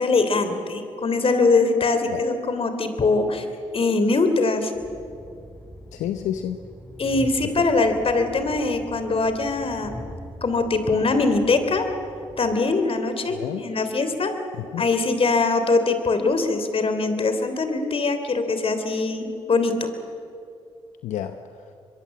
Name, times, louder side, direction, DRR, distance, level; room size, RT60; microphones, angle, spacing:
voice 1, 0.0-3.4 3.7-4.7 7.0-10.1 10.4-11.9 12.4-14.3 14.8-19.9, left 3 dB, 50° left, 8 dB, 3.3 m, -22 dB
Train, 4.7-12.6, equal, 20° left, 5.9 m, -42 dB
voice 2, 5.9-6.6 7.4-7.6 13.3-13.7 14.5-14.8 21.0-21.7, left 10 dB, 85° left, 8 dB, 0.9 m, -30 dB
24.0 x 22.5 x 7.7 m, 2.4 s
supercardioid pair, 50°, 12 cm